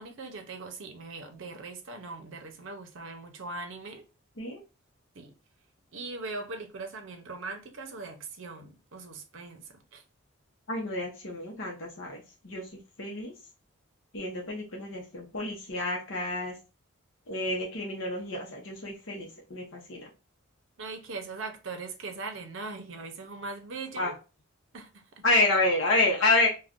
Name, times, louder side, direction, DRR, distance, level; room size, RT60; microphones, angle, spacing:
voice 1, 0.0-4.0 5.1-5.4 5.9-10.0 20.8-24.1 24.7-25.2, right 3 dB, 65° right, 0.6 m, -40 dB
voice 2, 10.7-12.7 13.0-13.3 14.1-16.6 17.3-20.1 24.0-24.1 25.2-26.5, left 2 dB, 65° left, 0.7 m, -29 dB
2.5 x 2.2 x 3.5 m
head